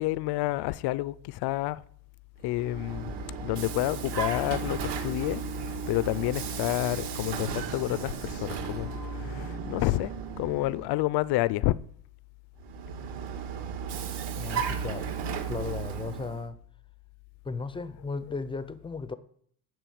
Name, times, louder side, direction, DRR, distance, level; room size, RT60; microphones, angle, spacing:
voice 1, 0.0-1.8 2.4-3.1 3.4-5.4 5.9-8.9 9.2-10.1 10.4-11.7, left 17 dB, 55° left, 0.6 m, -29 dB
Vehicle, 2.4-10.9 12.6-16.5, right 5 dB, 60° right, 1.8 m, -35 dB
voice 2, 14.3-15.1 15.5-16.6 17.4-19.1, left 4 dB, 10° left, 0.5 m, -35 dB
9.2 x 6.9 x 8.6 m
cardioid pair, 150°, 47 cm